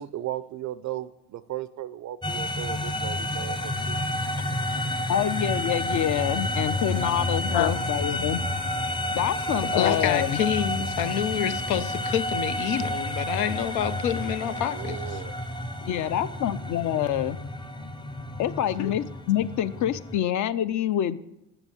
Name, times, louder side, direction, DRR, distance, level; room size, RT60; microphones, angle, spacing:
voice 1, 0.0-4.0 14.4-15.3, right 13 dB, 45° right, 0.4 m, -36 dB
sound 1, 2.2-20.2, left 1 dB, 10° left, 0.7 m, -30 dB
voice 2, 5.1-8.4 9.1-10.4 15.8-17.4 18.4-21.2, left 11 dB, 50° left, 0.6 m, -26 dB
voice 3, 9.6-15.2 18.8-18.9, left 10 dB, 80° left, 0.8 m, -27 dB
7.0 x 7.0 x 7.0 m
supercardioid pair, 75°, 40 cm